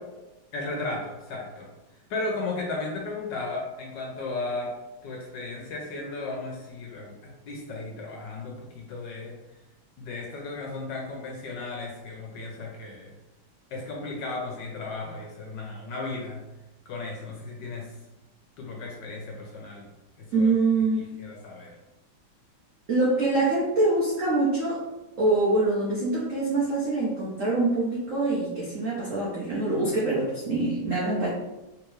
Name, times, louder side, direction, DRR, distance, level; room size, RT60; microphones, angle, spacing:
voice 1, 0.5-1.7 2.1-4.7 5.0-9.3 10.0-13.1 13.7-16.4 16.9-17.9 18.6-19.9 20.3-20.6 21.0-21.8, left 3 dB, 70° left, 0 dB, 1.1 m, -35 dB
voice 2, 20.3-21.1 22.9-24.8 25.2-31.3, right 2 dB, 90° right, -6 dB, 0.6 m, -24 dB
3.5 x 3.0 x 3.1 m, 1.0 s
omnidirectional pair, 2.4 m